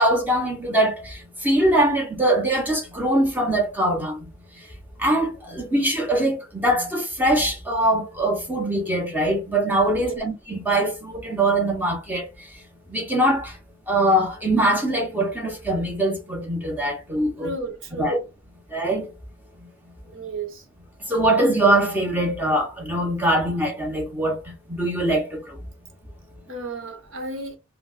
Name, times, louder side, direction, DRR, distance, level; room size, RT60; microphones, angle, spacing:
voice 1, 0.0-4.2 5.0-12.3 12.9-13.5 13.9-17.5 18.0-18.2 18.7-19.1 21.1-24.4 24.7-25.4, right 1 dB, 10° right, 0.8 m, -22 dB
voice 2, 9.9-10.2 17.4-18.2 20.0-20.7 26.5-27.6, right 3 dB, 70° right, 0.9 m, -33 dB
4.0 x 2.0 x 2.3 m
head